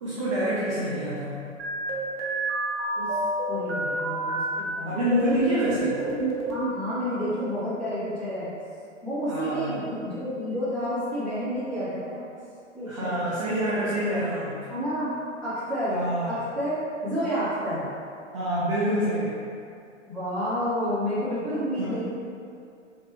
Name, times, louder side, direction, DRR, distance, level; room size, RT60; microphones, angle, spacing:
voice 1, 0.0-1.5 4.8-6.0 9.3-9.7 12.9-14.7 15.9-16.4 18.3-19.4 21.8-21.9, equal, 25° right, -9 dB, 0.4 m, -27 dB
sound 1, 1.6-4.6 5.1-6.7, right 2 dB, 50° right, 0.8 m, -29 dB
voice 2, 3.5-5.0 6.5-8.5 9.0-12.2 12.7-13.2 14.0-14.2 14.7-15.1 15.4-16.0 16.3-17.9 20.1-22.1, equal, 5° left, -14 dB, 0.9 m, -30 dB
3.4 x 2.3 x 2.8 m, 2.5 s
figure-of-eight pair, 110°, 37 cm